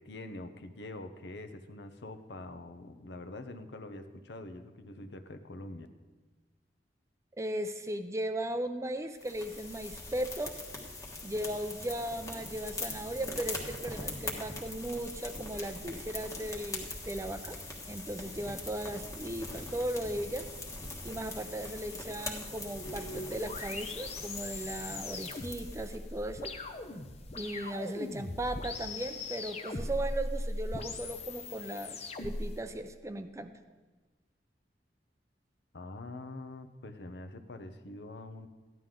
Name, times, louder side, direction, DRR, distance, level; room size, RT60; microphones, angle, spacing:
voice 1, 0.0-5.9 35.7-38.5, left 2 dB, 70° left, 8 dB, 0.8 m, -45 dB
voice 2, 7.4-10.5 11.2-17.6 17.9-20.5 21.0-26.5 27.3-33.5, right 1 dB, 15° right, 9 dB, 0.5 m, -37 dB
sound 1, 9.2-26.0, left 2 dB, 20° left, 1.4 m, -42 dB
sound 2, 22.8-32.6, left 2 dB, 35° left, 0.7 m, -40 dB
14.5 x 11.0 x 3.8 m, 1.3 s
head